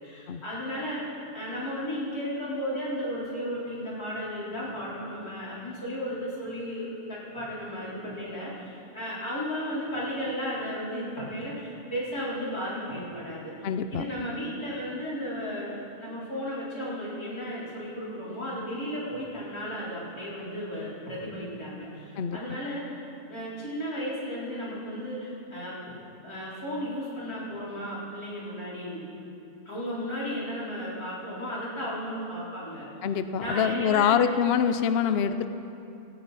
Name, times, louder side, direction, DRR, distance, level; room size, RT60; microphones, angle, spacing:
voice 1, 0.0-22.8 23.3-25.7 26.2-29.0 29.7-33.1 33.4-34.2 35.0-35.1, equal, 80° left, -8 dB, 4.5 m, -34 dB
voice 2, 13.6-14.1 22.2-22.6 33.0-35.5, left 7 dB, 60° left, 10 dB, 0.7 m, -25 dB
17.5 x 17.0 x 4.1 m, 2.7 s
omnidirectional pair, 1.6 m